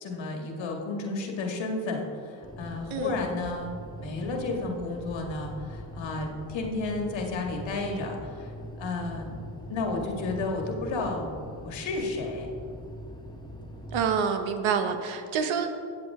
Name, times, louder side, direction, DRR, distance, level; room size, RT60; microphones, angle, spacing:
voice 1, 0.0-8.5 8.8-9.3 9.7-11.3 11.6-12.5, left 3 dB, 75° left, 2 dB, 2.0 m, -32 dB
sound 1, 2.4-14.1, equal, 10° left, 1.3 m, -42 dB
voice 2, 13.9-15.8, right 6 dB, 85° right, 6 dB, 1.1 m, -27 dB
14.5 x 7.8 x 3.7 m, 2.4 s
cardioid pair, 95°, 46 cm